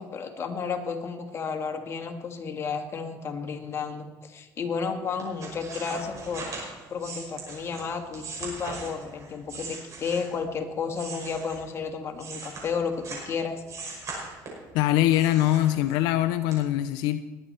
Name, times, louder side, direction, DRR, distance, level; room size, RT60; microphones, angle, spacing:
voice 1, 0.0-6.5 6.9-13.6, left 5 dB, 35° left, 4 dB, 1.9 m, -32 dB
sound 1, 5.2-10.5 10.9-13.3 13.7-14.7 15.1-16.1 16.5-16.6, right 3 dB, 45° right, 5.7 m, -39 dB
voice 2, 14.7-17.2, left 13 dB, 85° left, 11 dB, 0.5 m, -23 dB
20.0 x 9.0 x 4.3 m, 1.2 s
cardioid pair, 110°, 7 cm